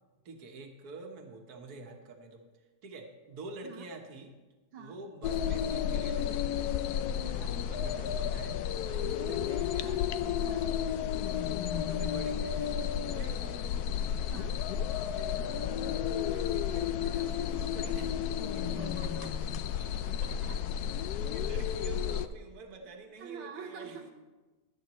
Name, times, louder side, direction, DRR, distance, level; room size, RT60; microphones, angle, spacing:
voice 1, 0.3-4.3 4.8-6.9 7.4-8.6 8.9-10.0 10.6-12.7 13.0-13.7 14.7-15.8 16.1-18.8 20.9-24.1, right 3 dB, 55° right, 2 dB, 1.7 m, -47 dB
sound 1, 5.2-22.3, left 9 dB, 75° left, 0.9 m, -32 dB
voice 2, 7.2-7.6 10.4-10.7 14.3-14.7 18.7-19.4 19.8-20.6 22.8-24.1, right 6 dB, 80° right, 1 dB, 1.8 m, -47 dB
24.5 x 8.6 x 3.1 m, 1.2 s
omnidirectional pair, 2.1 m